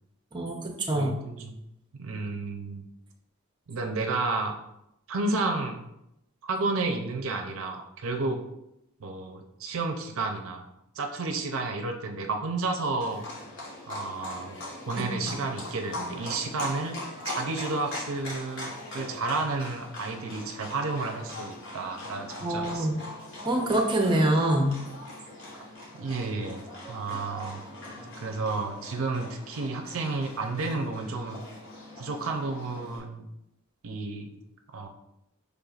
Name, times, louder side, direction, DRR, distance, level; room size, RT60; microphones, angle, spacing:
voice 1, 0.3-1.2 15.0-15.4 22.4-22.9 23.5-24.8, right 1 dB, 20° right, 2 dB, 0.6 m, -25 dB
voice 2, 0.9-1.6 2.0-2.8 3.7-4.6 5.1-5.8 6.4-8.4 9.0-10.6 11.0-13.3 13.9-14.6 14.9-17.0 17.2-23.0 25.9-26.6 26.9-27.6 28.2-31.4 32.0-33.3 33.8-34.3 34.7-34.9, right 3 dB, 65° right, 4 dB, 0.5 m, -31 dB
Livestock farm animals working animals, 13.0-33.0, left 1 dB, 60° left, 1.3 m, -41 dB
5.3 x 3.4 x 2.4 m, 0.84 s
head